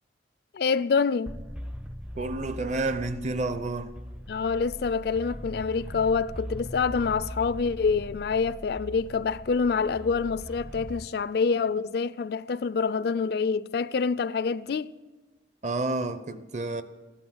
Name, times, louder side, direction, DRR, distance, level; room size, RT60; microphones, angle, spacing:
voice 1, 0.5-1.3 4.3-14.9, left 5 dB, 60° left, 0.4 m, -26 dB
sound 1, 1.3-11.1, equal, 5° right, 0.5 m, -40 dB
voice 2, 2.2-3.9 15.6-16.8, right 2 dB, 40° right, 0.8 m, -30 dB
15.0 x 11.5 x 7.9 m
head